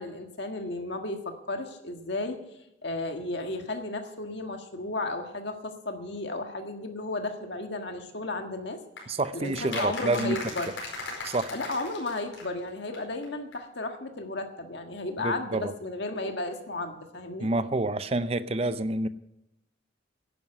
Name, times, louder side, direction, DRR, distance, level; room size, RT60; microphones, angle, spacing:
voice 1, 0.0-2.4 2.8-8.8 9.3-10.7 11.5-17.5, left 2 dB, 60° left, 1.6 m, -34 dB
sound 1, 9.0-12.7 12.9-13.0 13.2-13.3 13.5-13.6, left 3 dB, 85° left, 4.8 m, -38 dB
voice 2, 9.1-10.4 11.2-11.5 15.2-15.7 17.4-19.1, right 2 dB, 30° right, 0.5 m, -28 dB
11.0 x 9.7 x 7.8 m
head